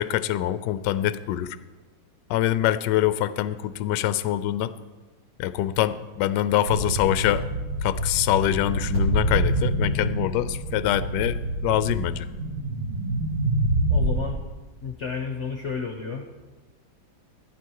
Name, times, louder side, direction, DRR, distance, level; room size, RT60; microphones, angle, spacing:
voice 1, 0.0-1.6 2.3-4.7 5.4-7.5 7.8-12.3, left 13 dB, 70° left, 14 dB, 1.1 m, -24 dB
sound 1, 6.7-14.1, right 1 dB, 85° right, 6.1 m, -26 dB
voice 2, 13.9-14.4 14.8-16.2, left 5 dB, 45° left, 3 dB, 1.0 m, -31 dB
14.5 x 10.0 x 4.7 m, 1.3 s
omnidirectional pair, 2.2 m